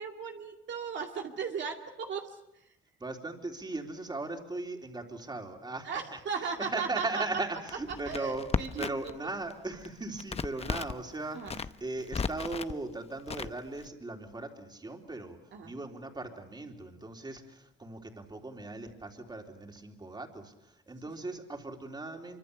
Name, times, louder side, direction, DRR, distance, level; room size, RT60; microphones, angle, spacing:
voice 1, 0.0-2.7 5.8-7.2 8.1-8.3 8.6-9.1 11.3-11.6 15.5-15.7, right 6 dB, 65° right, 2 dB, 2.4 m, -37 dB
voice 2, 3.0-8.5 8.8-22.4, right 2 dB, 20° right, 3 dB, 3.7 m, -38 dB
Crackle, 7.7-9.2 9.4-11.0 11.4-12.7 13.3-13.9, left 5 dB, 30° left, 0.8 m, -35 dB
25.5 x 24.5 x 6.9 m, 0.84 s
cardioid pair, 90°, 20 cm